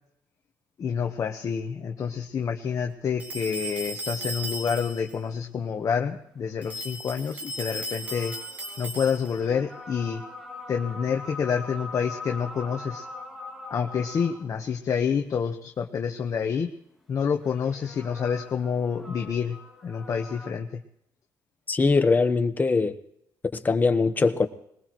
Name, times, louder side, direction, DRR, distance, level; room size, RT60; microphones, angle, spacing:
voice 1, 0.8-8.3 8.8-10.2 10.7-13.1 13.7-16.7 17.1-19.6 19.8-20.8, left 6 dB, 45° left, 1.2 m, -28 dB
sound 1, 3.2-5.2 6.6-9.5, right 1 dB, 20° right, 2.6 m, -36 dB
sound 2, 7.7-14.6 17.4-20.5, left 2 dB, ahead, 2.5 m, -42 dB
voice 2, 21.7-23.0 23.5-24.5, left 4 dB, 25° left, 1.2 m, -22 dB
21.5 x 20.5 x 3.1 m
cardioid pair, 125°, 8 cm